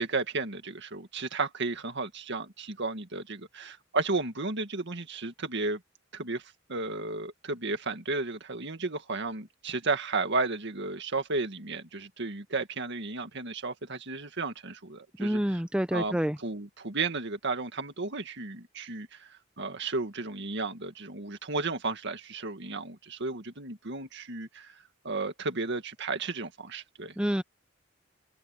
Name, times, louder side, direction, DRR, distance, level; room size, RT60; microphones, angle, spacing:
voice 1, 0.0-5.8 6.1-15.4 15.9-16.2 16.4-24.8 25.0-27.2, right 3 dB, 60° right, 2.0 m, -33 dB
voice 2, 15.2-16.4 27.2-27.4, equal, 5° right, 0.8 m, -27 dB
open air
head